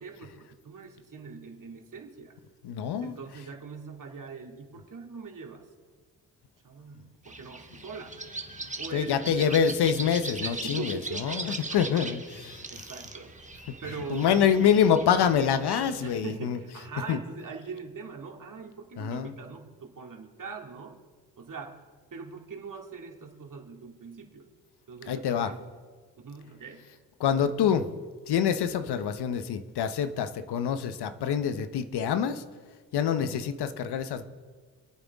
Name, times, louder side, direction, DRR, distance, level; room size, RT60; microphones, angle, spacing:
voice 1, 0.0-2.4 3.0-5.7 6.6-8.2 8.8-9.6 10.4-11.4 12.7-13.3 13.8-14.7 16.0-21.0 21.4-21.8 22.1-24.5 24.9-25.6 26.2-26.8, right 4 dB, 50° right, 1 dB, 2.5 m, -42 dB
voice 2, 2.6-3.1 8.9-12.6 14.1-16.6 17.1-17.2 19.0-19.3 25.1-25.5 27.2-27.9 28.3-32.4 32.9-34.2, left 8 dB, 75° left, 10 dB, 1.0 m, -26 dB
sound 1, 7.3-16.2, right 2 dB, 20° right, 1.6 m, -40 dB
26.0 x 8.9 x 3.6 m, 1.5 s
supercardioid pair, 50°, 40 cm